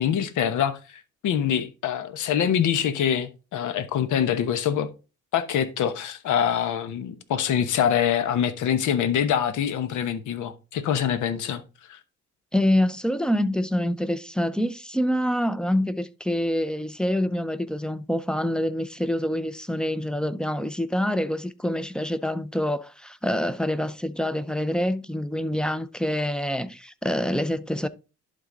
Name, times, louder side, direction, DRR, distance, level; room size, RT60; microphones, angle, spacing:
voice 1, 0.0-4.9 5.3-11.6 11.9-12.0, left 9 dB, 80° left, 1.0 m, -25 dB
voice 2, 12.5-27.9, left 1 dB, 5° left, 0.5 m, -26 dB
11.5 x 3.9 x 3.8 m
cardioid pair, 90°, 30 cm